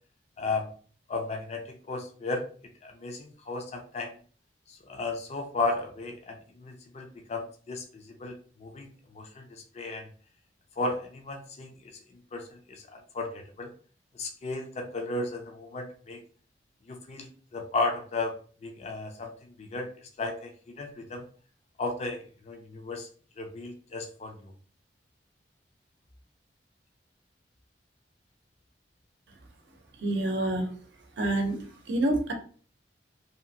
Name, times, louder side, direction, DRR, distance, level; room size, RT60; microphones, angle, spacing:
voice 1, 0.4-0.7 1.1-2.4 2.8-4.2 4.9-8.4 8.6-10.1 10.8-11.7 12.3-12.4 12.7-12.8 13.1-13.7 14.2-16.2 16.9-17.3 17.5-18.3 18.6-19.9 20.2-21.2 21.8-23.1 23.4-24.5, left 3 dB, 40° left, 4 dB, 0.4 m, -34 dB
voice 2, 30.0-30.7 31.2-31.6 31.9-32.3, right 1 dB, 80° right, 4 dB, 0.6 m, -27 dB
2.7 x 2.4 x 2.6 m, 0.43 s
head